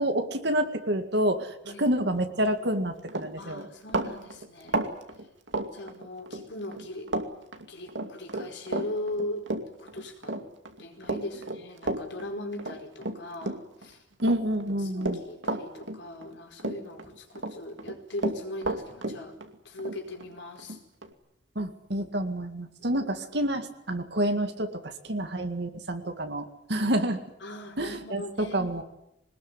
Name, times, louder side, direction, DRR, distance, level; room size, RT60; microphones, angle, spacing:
voice 1, 0.0-3.7 14.2-15.2 21.6-27.2 27.8-28.2 28.5-28.8, right 1 dB, 65° right, 6 dB, 2.1 m, -28 dB
Run, 2.6-2.8 3.1-6.4 6.7-7.3 7.5-13.9 14.2-16.3 16.6-17.5 17.8-21.1, right 2 dB, 80° right, 2.5 m, -32 dB
voice 2, 3.4-4.8 5.7-7.1 7.7-9.5 9.8-10.5 10.8-14.0 14.8-19.4 19.6-20.8 27.4-28.6, left 1 dB, 70° left, 3 dB, 4.9 m, -39 dB
22.5 x 20.0 x 9.8 m, 0.83 s
head